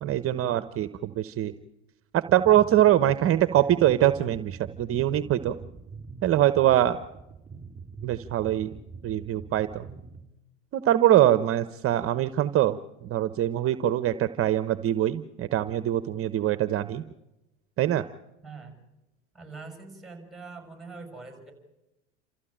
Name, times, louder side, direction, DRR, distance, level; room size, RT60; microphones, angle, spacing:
voice 1, 0.0-1.5 2.1-5.6 6.2-7.0 8.0-8.7 9.0-9.9 10.7-12.8 13.1-17.0 17.8-18.0, right 12 dB, 40° right, 13 dB, 0.9 m, -23 dB
sound 1, 2.2-10.2, right 5 dB, 20° right, 3.3 m, -44 dB
voice 2, 18.4-18.8 19.3-21.5, right 4 dB, ahead, 5 dB, 7.0 m, -43 dB
29.0 x 14.5 x 8.9 m, 0.96 s
hypercardioid pair, 85°, 35 cm